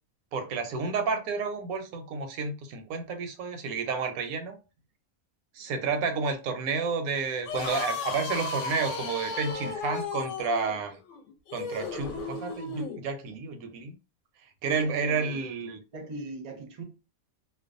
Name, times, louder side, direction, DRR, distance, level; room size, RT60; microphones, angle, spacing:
voice 1, 0.3-4.6 5.5-11.0 11.5-13.9 14.6-15.8, right 4 dB, 85° right, 1.0 m, -31 dB
sound 1, 7.4-13.0, left 3 dB, 65° left, 0.9 m, -34 dB
voice 2, 14.8-15.4 15.9-16.8, right 3 dB, 50° right, 0.5 m, -40 dB
2.5 x 2.2 x 2.4 m
omnidirectional pair, 1.5 m